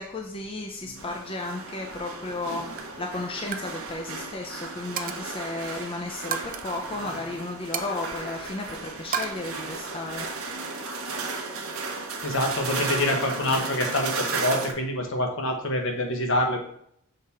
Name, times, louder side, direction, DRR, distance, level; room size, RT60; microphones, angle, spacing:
voice 1, 0.0-10.3, left 2 dB, 25° left, 2 dB, 0.5 m, -34 dB
sound 1, 1.0-14.7, right 3 dB, 80° right, 0.9 m, -34 dB
Coin (dropping), 2.2-2.5 2.8-3.0 3.4-3.7 4.0-4.2 5.0-5.4 6.3-6.7 7.7-8.6 9.1-9.3, right 8 dB, 40° right, 0.5 m, -33 dB
voice 2, 12.2-16.6, left 1 dB, 65° left, 2 dB, 1.1 m, -26 dB
6.6 x 3.6 x 4.3 m, 0.69 s
head